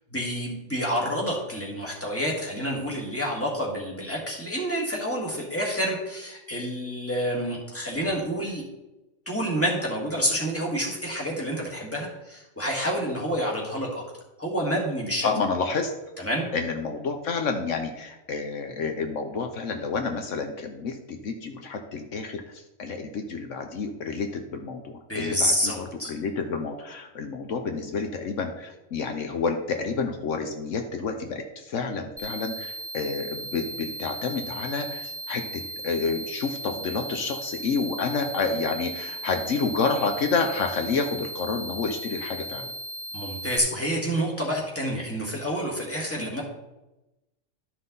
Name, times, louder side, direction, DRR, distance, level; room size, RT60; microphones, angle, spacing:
voice 1, 0.1-8.6 9.3-14.0 14.4-15.3 16.2-16.5 25.1-26.1 43.1-46.4, equal, 10° left, -2 dB, 1.8 m, -28 dB
voice 2, 15.2-15.9 16.5-42.7 46.2-46.3, left 4 dB, 75° left, 5 dB, 1.1 m, -29 dB
sound 1, 32.2-43.6, right 1 dB, 10° right, 0.9 m, -37 dB
12.0 x 5.6 x 4.0 m, 1.0 s
omnidirectional pair, 1.3 m